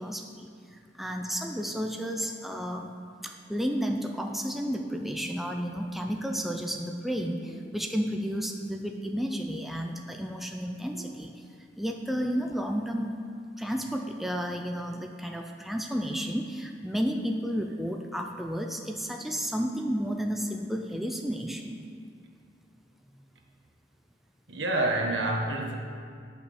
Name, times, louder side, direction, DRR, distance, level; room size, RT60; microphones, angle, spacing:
voice 1, 0.0-3.0 3.2-11.3 11.8-13.2 13.6-21.8 23.2-23.3, equal, ahead, 2 dB, 0.5 m, -32 dB
voice 2, 24.5-25.8, right 2 dB, 70° right, 1 dB, 1.3 m, -28 dB
9.4 x 5.7 x 6.5 m, 2.1 s
head